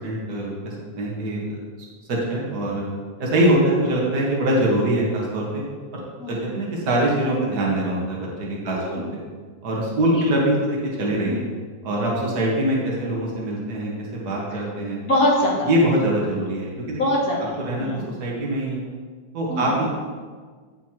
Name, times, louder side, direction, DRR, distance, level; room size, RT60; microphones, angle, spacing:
voice 1, 0.0-1.6 2.1-2.9 3.2-5.6 5.9-6.0 6.3-9.2 9.6-11.4 11.8-15.0 15.6-17.0 17.6-18.8 19.3-19.9, right 1 dB, 55° right, -3 dB, 2.1 m, -23 dB
voice 2, 8.6-9.1 10.1-10.3 11.2-11.4 13.1-13.2 15.0-15.7 17.0-18.0 19.5-19.7, left 1 dB, 50° left, -4 dB, 2.5 m, -24 dB
15.0 x 5.7 x 3.0 m, 1.5 s
omnidirectional pair, 2.1 m